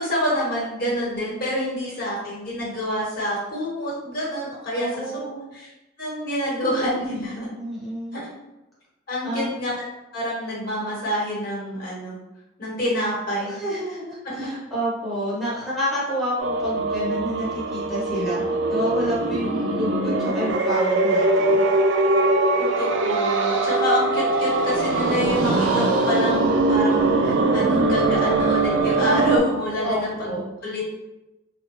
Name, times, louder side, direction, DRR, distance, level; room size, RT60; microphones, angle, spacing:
voice 1, 0.0-5.0 5.5-5.7 6.0-7.5 8.1-8.2 9.1-9.7 10.1-12.2 12.6-13.5 14.2-14.5 22.6-30.9, left 1 dB, 50° left, -6 dB, 1.2 m, -27 dB
voice 2, 4.8-5.5 7.5-8.4 9.2-9.5 13.5-18.4 18.7-21.6 29.8-30.0 30.2-30.4, equal, ahead, -10 dB, 0.9 m, -29 dB
sound 1, 16.4-29.4, right 2 dB, 70° right, 0.3 m, -21 dB
sound 2, 24.3-30.3, equal, 70° left, 1.0 m, -38 dB
3.5 x 2.2 x 3.0 m, 0.99 s
head